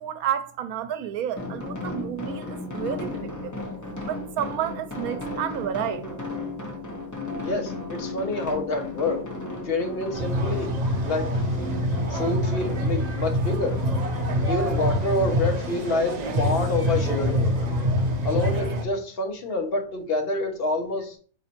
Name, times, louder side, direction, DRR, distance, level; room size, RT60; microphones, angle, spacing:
voice 1, 0.0-3.7 4.1-6.1, right 10 dB, 85° right, 1.0 m, -31 dB
sound 1, 1.3-18.6, left 2 dB, 20° left, 0.6 m, -36 dB
voice 2, 7.4-9.2 9.6-10.7 11.0-11.3 12.1-13.7 14.5-17.7 18.2-21.2, left 2 dB, 45° left, 1.1 m, -27 dB
sound 2, 10.1-18.8, equal, 50° right, 0.5 m, -25 dB
4.0 x 3.0 x 4.3 m
omnidirectional pair, 1.5 m